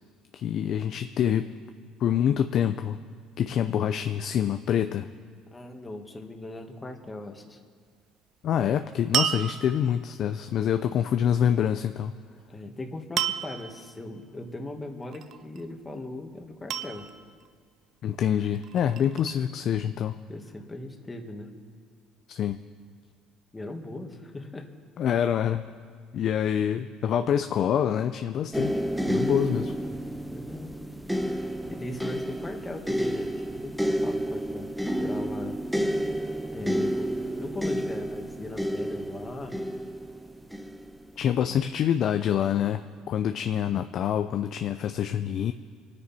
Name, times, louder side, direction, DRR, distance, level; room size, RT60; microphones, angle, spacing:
voice 1, 0.3-1.6 2.0-3.0 3.4-5.1 8.4-12.1 18.0-20.2 22.3-22.6 25.0-25.6 26.1-29.7 41.2-45.5, left 9 dB, 55° left, 8 dB, 0.5 m, -26 dB
voice 2, 5.5-7.6 12.5-17.1 20.3-21.5 23.5-24.7 29.5-30.0 30.3-30.8 31.7-35.6 36.5-39.6, left 2 dB, 20° left, 3 dB, 1.9 m, -39 dB
sound 1, 9.1-10.0 13.2-13.8 15.1-15.6 16.7-17.5 18.4-19.3, right 9 dB, 55° right, 0.6 m, -30 dB
sound 2, 28.5-41.6 42.4-42.6, equal, 5° right, 0.9 m, -30 dB
26.0 x 9.7 x 4.3 m, 2.1 s
supercardioid pair, 95°, 0 cm